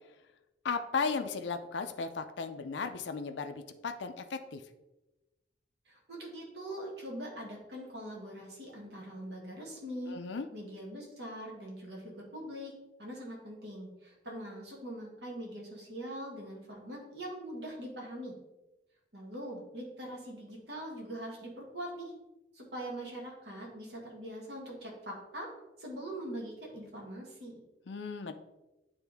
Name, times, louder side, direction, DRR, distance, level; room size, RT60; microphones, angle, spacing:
voice 1, 0.6-4.6 10.1-10.5 27.9-28.3, left 5 dB, 75° left, 7 dB, 0.5 m, -35 dB
voice 2, 5.8-10.2 10.5-12.7 13.0-18.3 19.1-22.1 22.5-25.5 25.8-27.6, right 1 dB, 60° right, -2 dB, 1.9 m, -42 dB
9.0 x 3.5 x 3.5 m, 1.0 s
head